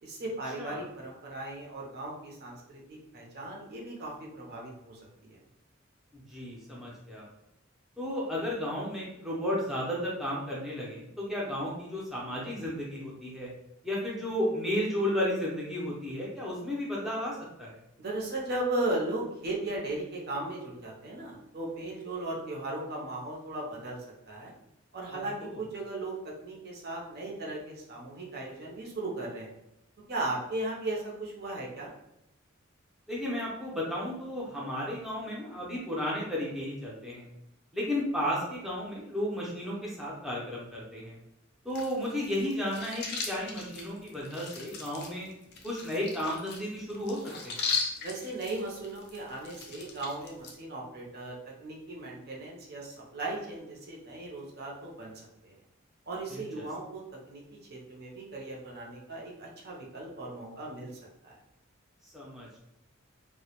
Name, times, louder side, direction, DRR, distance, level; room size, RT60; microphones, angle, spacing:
voice 1, 0.0-5.4 18.0-24.0 24.3-24.5 24.9-26.2 26.4-29.5 30.1-31.9 48.0-55.1 55.4-55.6 56.1-57.0 57.3-60.9 61.2-61.4, right 2 dB, 50° right, -2 dB, 0.6 m, -37 dB
voice 2, 6.1-7.3 8.0-13.5 13.8-17.8 25.1-25.6 33.1-37.3 37.7-41.2 41.6-45.3 45.6-47.2 47.4-47.6 56.3-56.4 62.1-62.6, left 1 dB, ahead, -5 dB, 0.5 m, -33 dB
sound 1, 41.7-50.5, left 5 dB, 50° left, 0.4 m, -38 dB
2.2 x 2.0 x 2.8 m, 0.83 s
head